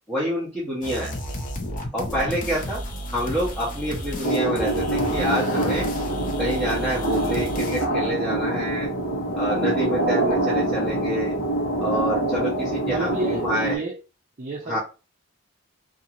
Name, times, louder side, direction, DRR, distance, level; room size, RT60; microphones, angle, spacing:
voice 1, 0.1-1.1 1.9-2.8 3.1-5.9 6.4-8.9 9.3-11.3 11.8-13.8 14.7-14.8, equal, 5° left, 1.0 m, -27 dB
sound 1, 0.8-7.9, equal, 40° left, 0.6 m, -33 dB
sound 2, 4.2-13.8, right 1 dB, 70° left, 0.9 m, -25 dB
voice 2, 12.8-14.0 14.4-14.8, right 2 dB, 35° right, 0.5 m, -30 dB
2.7 x 2.4 x 2.9 m
head